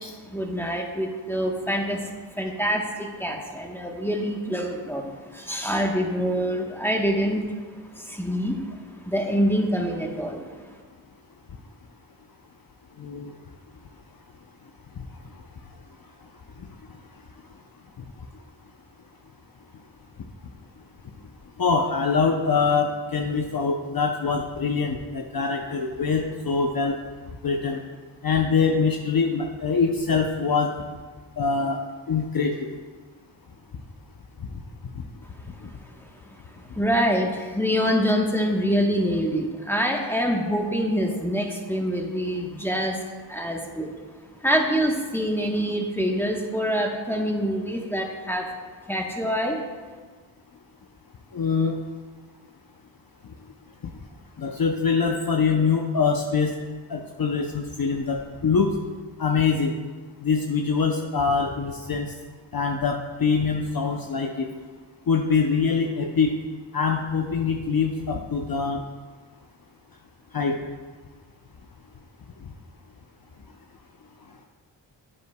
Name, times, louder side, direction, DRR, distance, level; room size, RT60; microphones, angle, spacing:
voice 1, 0.2-7.5 7.9-8.7 9.0-10.5 36.0-36.1 36.7-43.0 43.3-43.9 44.4-48.5 48.9-49.6, equal, 5° left, 1 dB, 1.1 m, -25 dB
voice 2, 13.0-13.3 21.6-27.0 27.4-27.8 28.2-30.7 31.4-31.8 32.1-32.5 51.3-51.7 54.4-56.5 56.9-58.8 59.2-59.8 60.2-62.1 62.5-64.5 65.1-66.3 66.7-68.8 70.3-70.6, left 5 dB, 50° left, 2 dB, 0.7 m, -24 dB
9.6 x 8.2 x 2.3 m, 1.4 s
cardioid pair, 50°, 47 cm